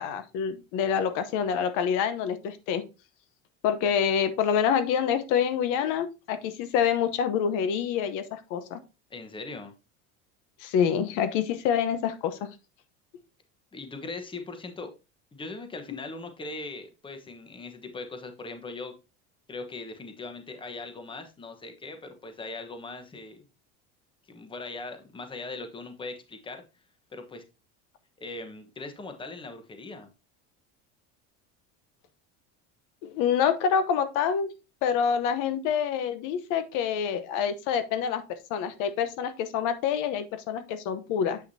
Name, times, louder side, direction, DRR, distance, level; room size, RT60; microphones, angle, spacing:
voice 1, 0.0-2.8 3.6-8.8 10.6-12.5 33.0-34.5 34.8-41.4, left 7 dB, 65° left, 11 dB, 1.0 m, -27 dB
voice 2, 9.1-9.7 13.7-14.9 15.3-18.9 19.5-23.4 24.3-26.6 27.1-27.4 28.2-30.1, left 3 dB, 15° left, 7 dB, 1.1 m, -40 dB
8.1 x 5.9 x 2.7 m, 0.29 s
cardioid pair, 135°, 34 cm